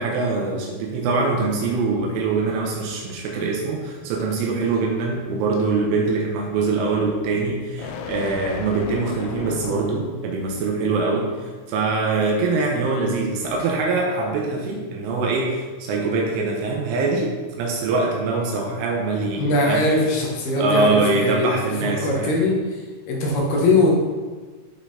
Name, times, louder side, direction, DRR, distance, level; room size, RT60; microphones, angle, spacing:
voice 1, 0.0-11.3 11.7-19.9 20.6-22.3, right 3 dB, 80° right, 0 dB, 3.5 m, -23 dB
sound 1, 3.3-10.2, left 7 dB, 85° left, 3.2 m, -37 dB
voice 2, 19.4-22.5 23.1-23.9, left 2 dB, 65° left, -2 dB, 3.0 m, -21 dB
11.5 x 5.8 x 4.3 m, 1.4 s
omnidirectional pair, 5.6 m